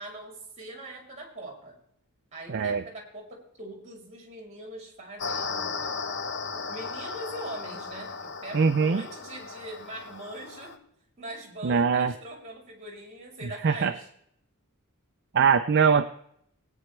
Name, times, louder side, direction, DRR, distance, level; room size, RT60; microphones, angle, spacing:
voice 1, 0.0-1.8 2.3-6.0 6.5-10.8 11.2-14.1, right 1 dB, 30° right, 0 dB, 3.2 m, -42 dB
voice 2, 2.5-2.8 8.5-9.0 11.6-12.1 13.4-13.9 15.3-16.1, right 6 dB, 50° right, 9 dB, 0.4 m, -22 dB
sound 1, 5.2-10.8, left 5 dB, 55° left, 0.8 m, -36 dB
19.5 x 9.3 x 3.3 m, 0.71 s
head